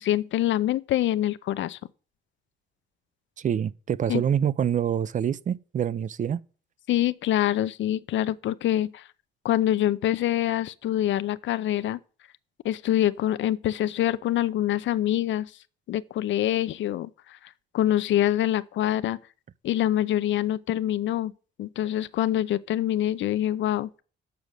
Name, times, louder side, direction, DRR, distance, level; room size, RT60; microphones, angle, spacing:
voice 1, 0.0-1.8 4.1-4.2 6.9-9.0 9.4-12.0 12.6-15.5 15.9-17.4 17.7-19.2 19.6-21.3 21.6-23.9, left 12 dB, 70° left, 0.6 m, -25 dB
voice 2, 3.4-6.4, right 9 dB, 40° right, 0.5 m, -26 dB
7.0 x 6.2 x 6.5 m
cardioid pair, 90°, 20 cm